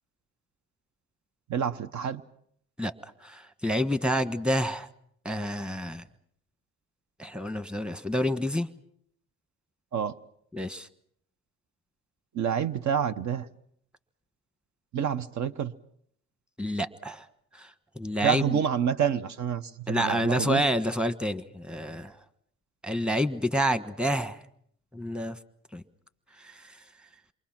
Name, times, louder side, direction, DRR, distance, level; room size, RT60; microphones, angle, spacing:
voice 1, 1.5-2.2 9.9-10.1 12.3-13.5 14.9-15.7 18.2-20.6, right 8 dB, 70° right, 12 dB, 1.0 m, -28 dB
voice 2, 3.2-4.9 5.2-6.0 7.2-8.7 10.5-10.9 16.6-17.2 17.6-17.7 18.0-18.6 19.9-22.1 22.8-24.4 24.9-25.4 25.7-25.8 26.4-26.6, equal, 5° right, 12 dB, 1.3 m, -28 dB
28.0 x 24.0 x 6.0 m, 0.69 s
cardioid pair, 90°, 30 cm